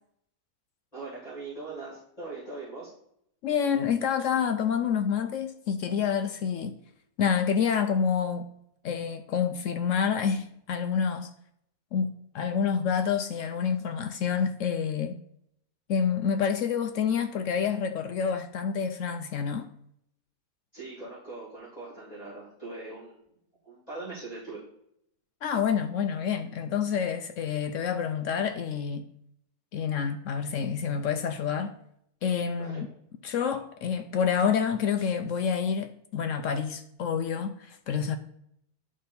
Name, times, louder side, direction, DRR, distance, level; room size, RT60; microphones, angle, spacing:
voice 1, 0.9-2.9 20.7-23.2 23.6-24.6 32.6-32.8, right 3 dB, 25° left, 3.1 m, -41 dB
voice 2, 3.4-6.8 7.2-8.5 8.8-11.3 11.9-15.2 15.9-19.7 25.4-29.1 29.7-31.8 32.2-32.9 33.2-38.2, left 7 dB, 70° left, 0.8 m, -28 dB
11.0 x 3.8 x 4.1 m
omnidirectional pair, 1.6 m